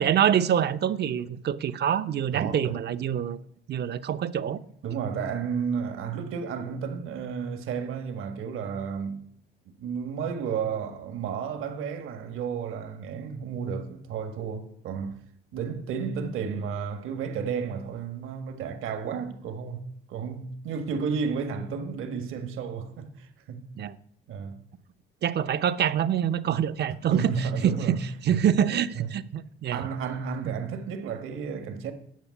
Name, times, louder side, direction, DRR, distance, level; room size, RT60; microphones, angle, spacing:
voice 1, 0.0-3.4 3.7-4.6 23.8-23.9 25.2-28.0 28.2-29.8, right 9 dB, 55° right, 0.7 m, -25 dB
voice 2, 2.3-2.8 4.8-9.2 9.8-15.2 15.5-23.7 24.3-24.6 27.1-28.0 28.3-28.4 28.9-29.1 29.7-31.9, right 6 dB, 75° right, 1.6 m, -32 dB
10.5 x 5.7 x 8.3 m
cardioid pair, 95°, 21 cm